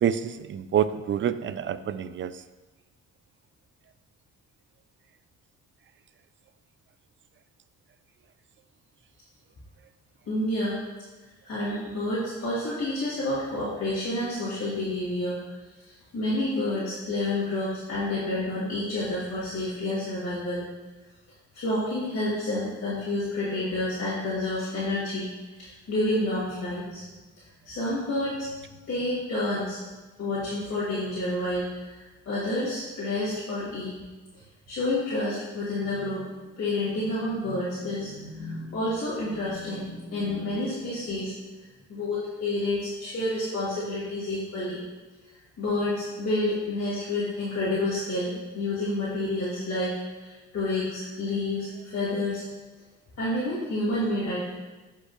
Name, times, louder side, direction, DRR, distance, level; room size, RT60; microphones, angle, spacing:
voice 1, 0.0-2.3, right 9 dB, 40° right, 13 dB, 0.4 m, -27 dB
voice 2, 10.3-10.8 11.4-15.4 16.1-20.7 21.5-25.3 25.6-27.0 27.7-28.5 28.9-29.8 30.2-32.0 32.3-33.9 34.7-36.2 36.5-41.3 41.9-44.8 45.6-49.9 50.2-52.4 53.2-54.5, left 1 dB, 50° left, -9 dB, 2.4 m, -29 dB
11.5 x 5.3 x 2.4 m, 1.2 s
cardioid pair, 90°, 30 cm